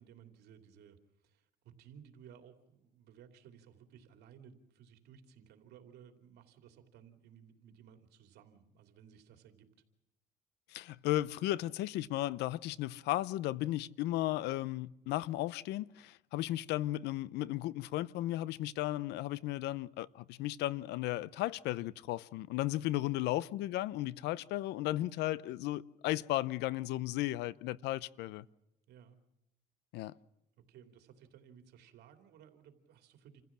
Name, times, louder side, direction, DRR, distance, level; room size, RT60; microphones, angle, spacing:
voice 1, 0.0-9.7 23.2-23.4 28.9-29.2 30.1-30.2 30.6-33.4, right 8 dB, 75° right, 2.9 m, -58 dB
voice 2, 10.7-28.4 29.9-30.1, left 15 dB, 85° left, 0.7 m, -35 dB
28.0 x 15.5 x 7.5 m
cardioid pair, 110°, 17 cm